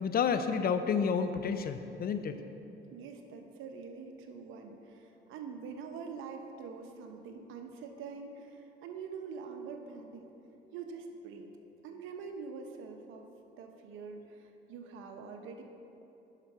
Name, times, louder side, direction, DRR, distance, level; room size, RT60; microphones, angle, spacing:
voice 1, 0.0-2.4, left 6 dB, 50° left, 9 dB, 0.5 m, -30 dB
voice 2, 2.9-10.3 10.7-11.5 11.8-13.2 13.6-15.6, right 5 dB, 90° right, 4 dB, 0.8 m, -45 dB
10.5 x 5.8 x 4.7 m, 2.9 s
cardioid pair, 90°, 20 cm